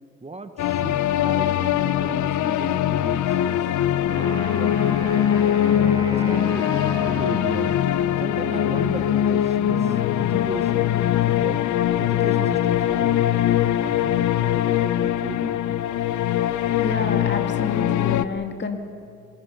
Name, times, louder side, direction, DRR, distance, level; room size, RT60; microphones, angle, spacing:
voice 1, 0.2-3.7 4.1-5.1 5.6-7.8 8.2-11.0 11.3-11.6 12.0-13.3 13.8-15.8, right 3 dB, 20° right, 9 dB, 1.2 m, -36 dB
sound 1, 0.6-18.3, left 11 dB, 75° left, 0.9 m, -22 dB
Wind instrument woodwind instrument, 4.0-8.0, equal, 15° left, 4.1 m, -36 dB
voice 2, 16.8-18.8, left 4 dB, 35° left, 5 dB, 2.5 m, -28 dB
27.5 x 20.5 x 6.8 m, 2.3 s
cardioid pair, 90°, 30 cm